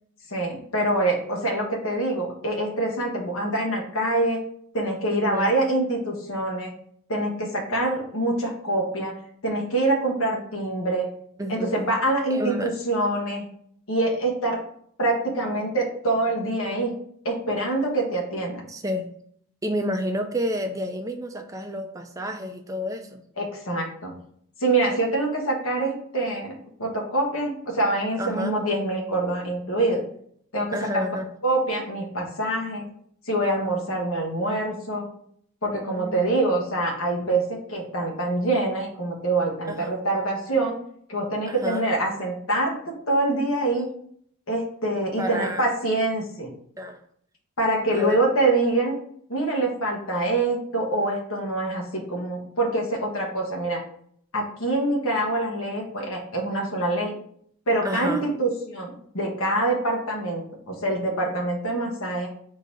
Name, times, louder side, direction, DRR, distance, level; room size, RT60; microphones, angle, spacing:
voice 1, 0.3-4.4 4.7-6.7 7.1-9.1 9.4-11.1 11.5-13.4 13.9-14.6 15.0-16.9 17.2-18.6 23.4-24.1 24.6-26.5 26.8-30.0 30.5-31.0 31.4-32.8 33.3-35.1 35.6-37.4 37.7-40.8 41.1-43.9 44.5-46.5 47.6-49.0 49.3-53.8 54.3-57.1 57.7-62.3, right 2 dB, 75° left, -1 dB, 1.2 m, -25 dB
voice 2, 5.1-5.5 11.4-11.8 12.2-12.7 18.7-19.1 19.6-23.2 28.2-28.6 30.7-31.3 35.7-36.2 39.7-40.0 41.5-41.9 45.2-45.7 46.8-47.0 47.9-48.2 57.8-58.2, equal, 15° right, 5 dB, 0.3 m, -30 dB
3.8 x 2.8 x 4.8 m, 0.65 s
head